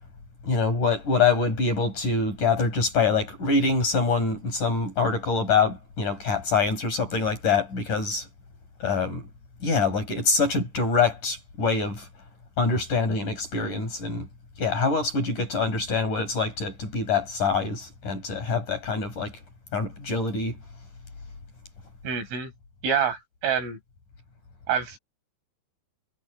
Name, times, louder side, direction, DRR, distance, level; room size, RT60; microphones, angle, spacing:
voice 1, 0.4-8.3 8.8-9.3 9.6-12.1 12.6-14.3 14.6-19.3 19.7-20.6, left 4 dB, 40° left, 7.4 m, -25 dB
voice 2, 22.0-22.5 22.8-23.8 24.7-25.0, right 7 dB, 80° right, 8.2 m, -26 dB
omnidirectional pair, 5.6 m